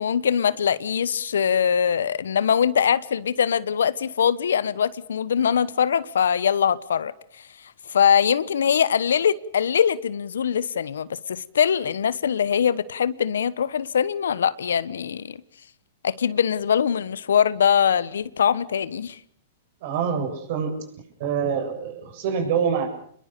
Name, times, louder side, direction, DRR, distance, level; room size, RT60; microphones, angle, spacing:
voice 1, 0.0-7.1 7.9-15.4 16.0-19.2, left 8 dB, 85° left, 1.1 m, -22 dB
voice 2, 19.8-20.8 21.2-22.9, right 7 dB, 60° right, 7.7 m, -25 dB
27.5 x 21.5 x 6.8 m
hypercardioid pair, 120°, 0 cm